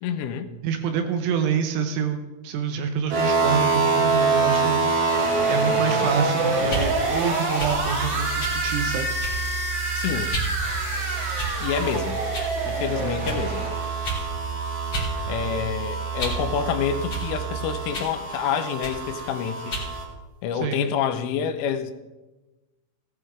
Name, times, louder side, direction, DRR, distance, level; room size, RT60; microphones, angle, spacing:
voice 1, 0.0-0.5 10.0-10.3 11.6-12.2 12.7-13.7 15.3-19.8 20.4-21.9, left 7 dB, 85° left, 8 dB, 3.2 m, -27 dB
voice 2, 0.6-4.8 5.5-9.1 20.5-20.9, right 6 dB, 80° right, 6 dB, 3.1 m, -27 dB
sound 1, 3.1-20.0, right 3 dB, 60° right, 4.7 m, -26 dB
sound 2, 6.6-6.9 7.6-7.8 8.4-8.6 9.2-9.5 10.3-10.5 11.3-11.7 12.3-12.5 13.2-13.4 14.0-14.2 14.9-15.1 15.5-16.5 17.1-17.3 17.9-18.2 18.8-19.0 19.7-19.9, right 1 dB, 30° left, 2.6 m, -30 dB
sound 3, 7.7-17.7, right 10 dB, 50° left, 1.7 m, -34 dB
17.5 x 11.0 x 3.6 m, 1.1 s
omnidirectional pair, 5.9 m